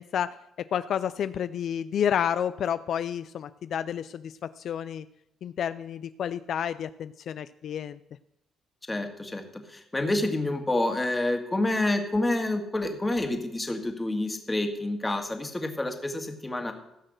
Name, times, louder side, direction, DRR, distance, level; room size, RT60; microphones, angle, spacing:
voice 1, 0.0-5.1 5.4-8.0, left 9 dB, 65° left, 14 dB, 0.4 m, -30 dB
voice 2, 8.9-16.7, left 2 dB, 15° left, 5 dB, 1.8 m, -28 dB
15.5 x 6.4 x 6.5 m, 0.84 s
cardioid pair, 90°, 0 cm